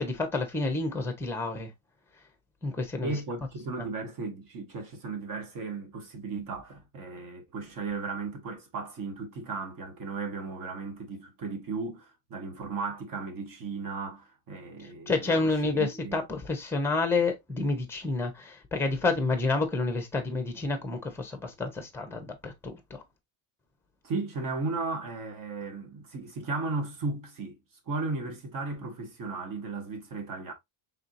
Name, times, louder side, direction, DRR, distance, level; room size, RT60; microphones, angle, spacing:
voice 1, 0.0-1.7 2.6-3.1 15.1-22.8, left 3 dB, 5° left, 0.7 m, -29 dB
voice 2, 3.0-16.2 24.0-27.5 27.9-30.5, right 3 dB, 40° right, 1.2 m, -35 dB
4.4 x 3.4 x 2.5 m
cardioid pair, 165°, 49 cm